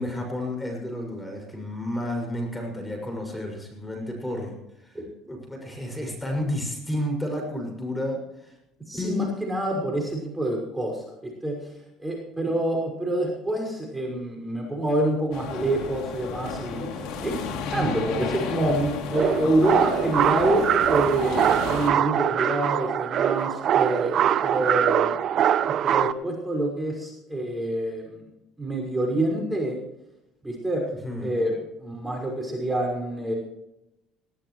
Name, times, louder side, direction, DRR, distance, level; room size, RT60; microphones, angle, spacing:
voice 1, 0.0-5.0 5.3-8.6 8.9-9.3 31.0-31.3, left 1 dB, 10° left, 2 dB, 6.4 m, -31 dB
voice 2, 8.9-11.6 12.0-17.4 17.7-25.2 25.8-28.2 28.6-29.8 30.4-30.8 31.2-33.3, right 1 dB, 10° right, 0 dB, 5.8 m, -27 dB
sound 1, 15.3-21.9, left 5 dB, 75° left, 3.0 m, -32 dB
sound 2, 19.1-26.1, right 10 dB, 55° right, 0.7 m, -23 dB
19.5 x 18.0 x 3.2 m, 0.87 s
supercardioid pair, 85°, 0 cm